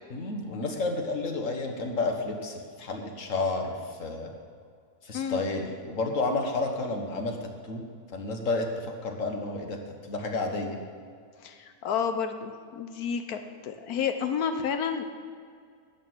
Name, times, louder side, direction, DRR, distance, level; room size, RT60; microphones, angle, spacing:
voice 1, 0.1-4.3 5.0-7.8 8.1-9.8 10.1-10.8, left 3 dB, 60° left, 3 dB, 1.8 m, -31 dB
voice 2, 11.4-15.0, left 7 dB, 90° left, 7 dB, 1.4 m, -30 dB
12.5 x 6.7 x 9.4 m, 2.2 s
omnidirectional pair, 1.5 m